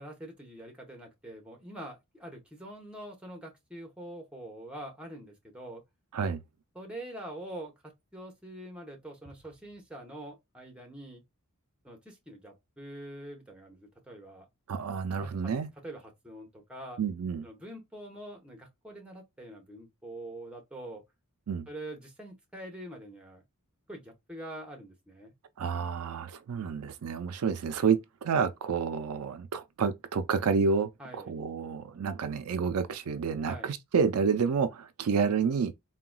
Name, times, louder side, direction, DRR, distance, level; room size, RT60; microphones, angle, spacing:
voice 1, 0.0-5.8 6.7-11.2 11.8-14.4 15.2-15.5 15.8-17.0 17.4-21.0 21.7-23.4 23.9-25.3 31.0-31.3 33.4-33.7, right 1 dB, 5° right, 0.9 m, -44 dB
voice 2, 14.7-15.7 17.0-17.4 21.5-21.7 25.6-35.7, right 6 dB, 70° right, 0.4 m, -29 dB
3.8 x 2.2 x 2.2 m
head